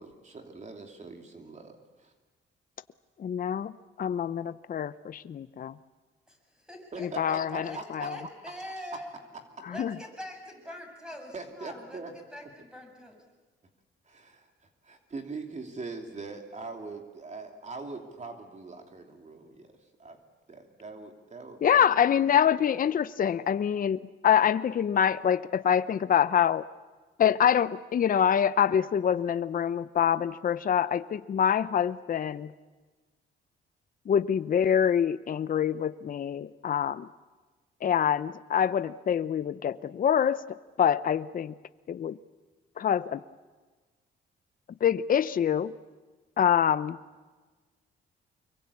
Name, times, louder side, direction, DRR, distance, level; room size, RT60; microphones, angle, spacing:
voice 1, 0.0-2.1 6.9-8.1 11.3-12.1 14.1-14.5 14.8-20.2 20.5-21.8 22.2-22.3 22.6-22.8, right 3 dB, 35° right, 4 dB, 3.0 m, -42 dB
voice 2, 3.2-3.7 4.0-5.8 7.0-8.2 9.8-9.9 21.6-26.6 27.2-32.5 34.1-37.1 37.8-41.5 41.9-42.2 42.8-43.2 44.8-45.7 46.4-47.0, left 8 dB, 45° left, 14 dB, 0.7 m, -25 dB
voice 3, 6.3-9.2 9.7-13.2, equal, 5° right, 2 dB, 7.3 m, -44 dB
25.5 x 23.0 x 8.5 m, 1.3 s
cardioid pair, 90°, 20 cm